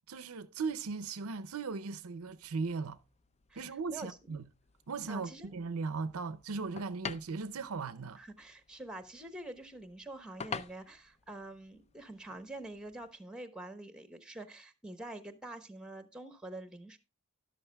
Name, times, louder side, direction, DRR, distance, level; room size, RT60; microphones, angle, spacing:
voice 1, 0.1-3.0 3.6-4.4 4.9-8.2, right 4 dB, 70° right, 0.6 m, -38 dB
sound 1, 2.3-13.1, left 5 dB, 30° left, 0.4 m, -49 dB
voice 2, 3.5-4.4 5.1-5.5 8.2-17.0, right 2 dB, 5° right, 1.0 m, -46 dB
13.0 x 11.5 x 2.3 m
head